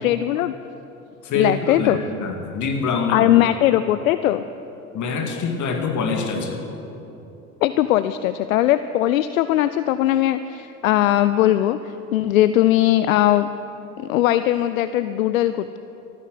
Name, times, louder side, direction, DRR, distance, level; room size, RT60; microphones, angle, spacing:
voice 1, 0.0-0.5 1.3-2.0 3.1-4.4 7.6-13.5 14.0-15.8, left 13 dB, 70° left, 13 dB, 0.5 m, -19 dB
voice 2, 1.2-3.5 4.9-6.6, left 4 dB, 45° left, 3 dB, 2.3 m, -25 dB
14.0 x 12.0 x 7.9 m, 3.0 s
figure-of-eight pair, 65°, 43 cm